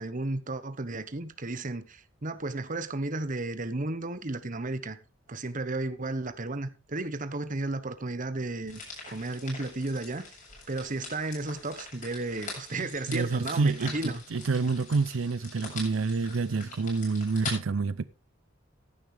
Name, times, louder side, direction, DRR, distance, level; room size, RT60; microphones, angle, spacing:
voice 1, 0.0-5.0 5.3-8.8 9.1-10.2 10.7-14.2, right 2 dB, 40° right, 1.1 m, -33 dB
sound 1, 8.7-17.6, left 4 dB, 45° left, 7.6 m, -43 dB
voice 2, 13.1-18.0, right 4 dB, 85° right, 0.5 m, -28 dB
15.5 x 11.0 x 3.4 m
head